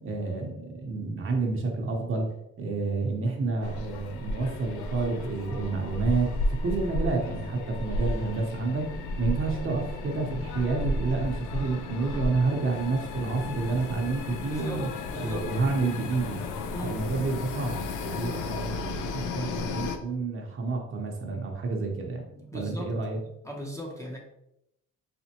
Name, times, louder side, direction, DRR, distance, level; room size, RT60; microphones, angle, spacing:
voice 1, 0.0-2.3 2.6-8.8 9.2-14.9 15.2-16.4 16.8-22.2 22.5-23.2, right 3 dB, 45° right, 1 dB, 0.8 m, -29 dB
sound 1, 3.6-20.0, left 2 dB, 80° left, 0.5 m, -33 dB
voice 2, 14.5-15.5 16.7-17.0 18.2-18.5 22.3-24.2, left 1 dB, 10° left, -1 dB, 0.6 m, -39 dB
4.2 x 2.1 x 2.8 m, 0.81 s
cardioid pair, 90°, 30 cm